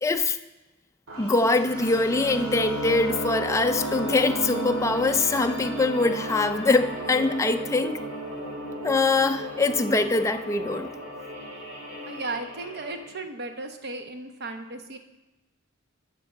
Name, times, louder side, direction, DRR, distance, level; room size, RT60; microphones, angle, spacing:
voice 1, 0.0-0.4 1.2-8.0 8.8-10.9, left 3 dB, 15° left, 6 dB, 0.4 m, -23 dB
sound 1, 1.1-13.0, right 1 dB, 85° right, 2.5 m, -34 dB
voice 2, 12.1-15.0, right 3 dB, 55° right, 6 dB, 0.9 m, -35 dB
12.5 x 4.5 x 6.4 m, 1.0 s
head